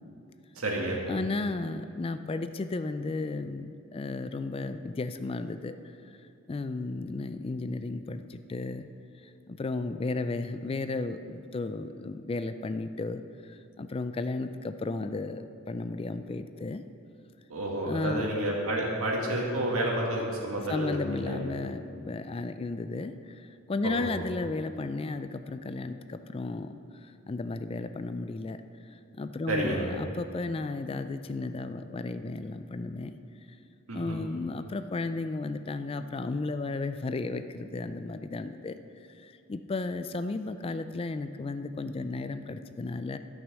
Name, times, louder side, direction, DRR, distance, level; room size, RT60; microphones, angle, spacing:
voice 1, 0.6-1.0 17.5-21.4 23.8-23.9 29.5-29.8 33.9-34.2, right 1 dB, 90° right, -2 dB, 2.1 m, -30 dB
voice 2, 1.1-5.8 6.5-8.9 9.5-13.2 13.5-16.8 17.8-18.3 20.7-23.1 23.7-26.8 27.3-28.6 29.2-33.1 33.9-38.8 39.2-43.2, left 3 dB, 25° left, 10 dB, 0.3 m, -34 dB
12.0 x 6.3 x 6.2 m, 2.6 s
head